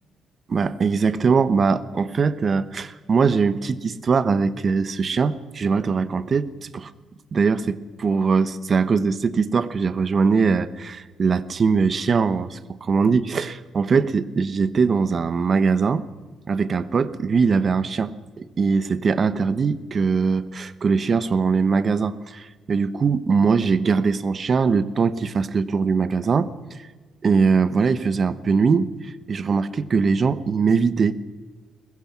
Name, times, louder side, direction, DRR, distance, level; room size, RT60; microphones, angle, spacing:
voice 1, 0.5-6.9 7.3-16.1 16.5-26.5 27.2-31.1, right 5 dB, 45° right, 15 dB, 1.1 m, -21 dB
22.0 x 20.5 x 6.0 m, 1.4 s
cardioid pair, 90°, 0 cm